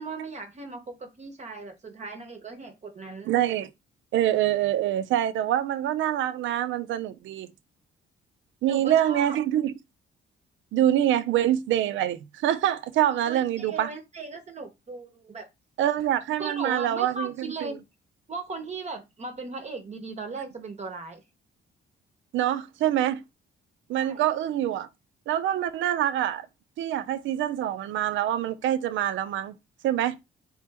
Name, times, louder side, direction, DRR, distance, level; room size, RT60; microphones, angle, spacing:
voice 1, 0.0-3.3 8.6-9.4 13.2-15.5 16.4-17.8 18.3-21.2 23.9-24.2, right 3 dB, 35° right, 0.8 m, -37 dB
voice 2, 3.3-3.7 4.1-7.5 8.6-9.7 10.7-13.9 15.8-17.8 22.3-23.2 23.9-24.9 25.3-26.5 26.8-29.5 29.8-30.2, right 11 dB, 75° right, 0.5 m, -25 dB
4.0 x 3.0 x 3.4 m
cardioid pair, 90°, 20 cm